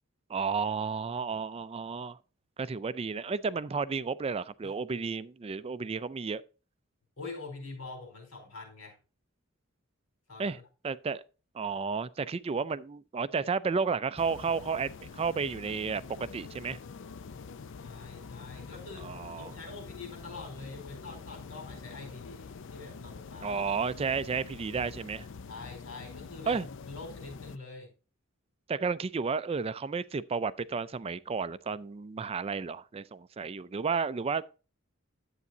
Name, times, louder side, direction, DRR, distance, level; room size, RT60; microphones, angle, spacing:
voice 1, 0.3-2.2 2.6-6.4 10.4-10.6 10.8-11.2 11.5-16.8 19.0-19.6 23.4-25.3 26.5-26.7 28.7-34.5, right 5 dB, 30° right, 0.4 m, -32 dB
voice 2, 7.2-9.0 10.3-10.6 17.7-23.6 25.5-27.9, left 3 dB, 90° left, 4.6 m, -45 dB
sound 1, 14.2-27.6, left 5 dB, 65° left, 0.5 m, -46 dB
11.0 x 8.3 x 2.8 m
head